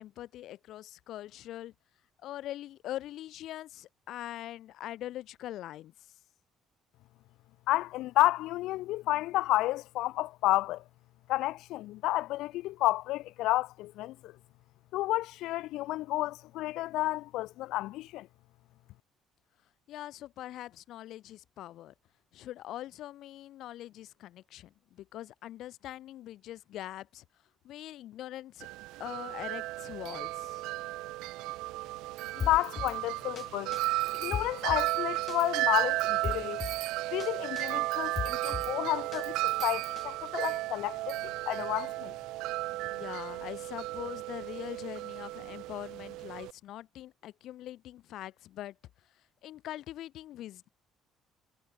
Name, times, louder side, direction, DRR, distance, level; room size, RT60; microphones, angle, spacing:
voice 1, 0.0-1.7 2.2-5.9 19.9-21.9 22.3-27.2 27.6-28.7 29.0-30.7 42.9-48.8 49.4-50.7, left 13 dB, 60° left, 5.3 m, -42 dB
voice 2, 7.7-10.8 11.3-14.3 14.9-18.3 32.4-33.7 34.1-36.6 37.1-42.1, left 17 dB, 75° left, 1.0 m, -31 dB
Wind chime, 28.6-46.5, right 19 dB, 85° right, 0.9 m, -34 dB
Drum kit, 32.4-33.0 33.4-33.5 33.7-34.9 35.3-35.4 35.8-36.8 37.2-37.3 37.6-38.7 39.1-40.0, left 7 dB, 30° left, 0.6 m, -37 dB
cardioid pair, 160°, 0 cm